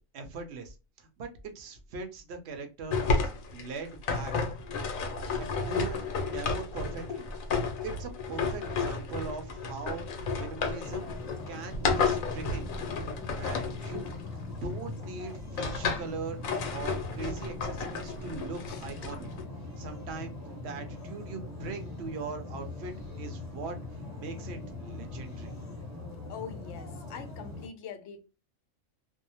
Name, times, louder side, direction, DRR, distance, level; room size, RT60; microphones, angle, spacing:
voice 1, 0.1-4.3 5.4-6.0 6.3-7.3 7.8-11.1 11.5-12.7 13.4-14.0 14.6-19.3 19.8-20.4 20.6-23.8 24.1-25.6, right 4 dB, 60° right, 0.8 m, -40 dB
sound 1, 2.9-14.8 15.3-16.1 16.4-19.4, left 4 dB, 90° left, 1.0 m, -32 dB
sound 2, 10.8-27.7, left 2 dB, 15° left, 1.0 m, -41 dB
voice 2, 26.3-28.2, left 7 dB, 65° left, 0.8 m, -43 dB
2.6 x 2.0 x 2.7 m
omnidirectional pair, 1.4 m